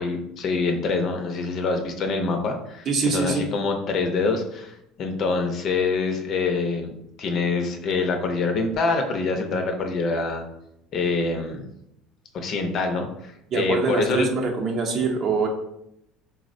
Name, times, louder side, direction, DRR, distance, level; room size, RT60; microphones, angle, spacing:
voice 1, 0.0-10.4 10.9-11.6 12.3-14.3, left 3 dB, 45° left, 4 dB, 0.5 m, -25 dB
voice 2, 2.9-3.5 13.5-15.5, right 4 dB, 40° right, 2 dB, 0.6 m, -24 dB
4.0 x 2.0 x 2.5 m, 0.78 s
cardioid pair, 140°, 0 cm